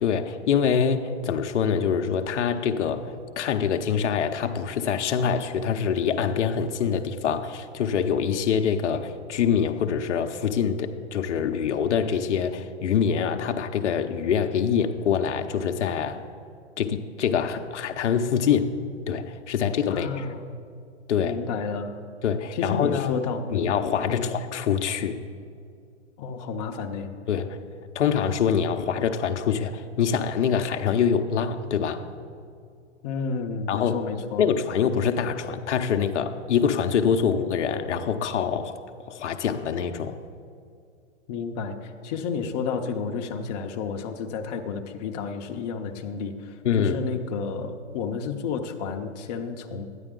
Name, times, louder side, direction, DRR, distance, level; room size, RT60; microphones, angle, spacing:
voice 1, 0.0-3.1 3.4-16.2 16.8-18.8 19.1-20.3 21.1-21.4 22.2-23.3 23.5-25.2 27.3-27.6 27.9-32.0 33.7-34.0 34.4-38.8 39.1-40.2 46.6-47.0, left 7 dB, 75° left, 6 dB, 0.8 m, -25 dB
voice 2, 19.9-20.4 21.2-22.0 22.5-23.7 24.1-24.3 26.2-27.1 33.0-34.4 41.3-49.9, left 5 dB, 35° left, 3 dB, 0.7 m, -31 dB
13.0 x 9.9 x 3.8 m, 2.3 s
hypercardioid pair, 145°, 36 cm